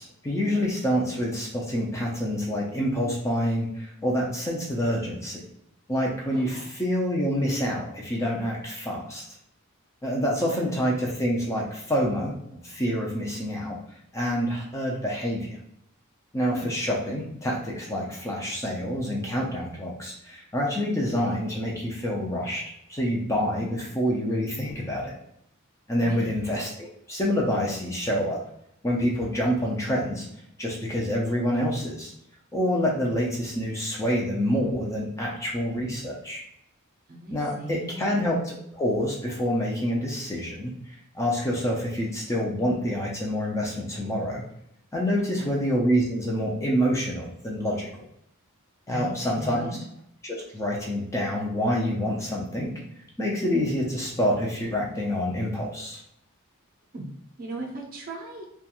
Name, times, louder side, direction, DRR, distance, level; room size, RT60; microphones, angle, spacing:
voice 1, 0.0-5.4 5.9-9.2 10.0-12.3 12.6-13.8 14.1-15.6 16.3-22.6 22.9-25.1 25.9-28.4 28.8-30.3 30.6-32.1 32.5-36.4 37.3-40.7 41.1-44.4 44.9-47.9 48.9-49.7 50.2-52.7 53.2-56.0, equal, 15° left, -3 dB, 0.4 m, -27 dB
voice 2, 6.3-6.6 10.5-10.6 16.5-16.7 26.0-26.3 37.1-38.2 45.2-45.5 48.9-49.8 56.9-57.1 57.4-58.4, right 2 dB, 40° right, -1 dB, 0.5 m, -37 dB
2.4 x 2.2 x 2.8 m, 0.75 s
head